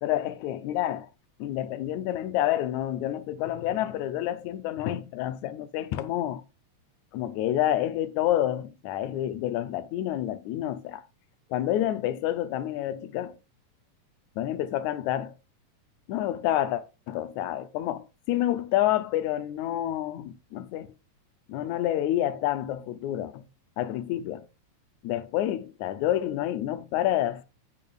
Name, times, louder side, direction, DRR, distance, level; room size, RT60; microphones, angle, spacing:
voice 1, 0.0-1.1 1.4-6.4 7.1-11.0 11.5-13.4 14.4-15.3 16.1-20.9 21.5-23.5 23.8-24.5 25.0-27.4, left 12 dB, 85° left, 2.0 m, -28 dB
8.7 x 8.3 x 2.4 m
omnidirectional pair, 3.3 m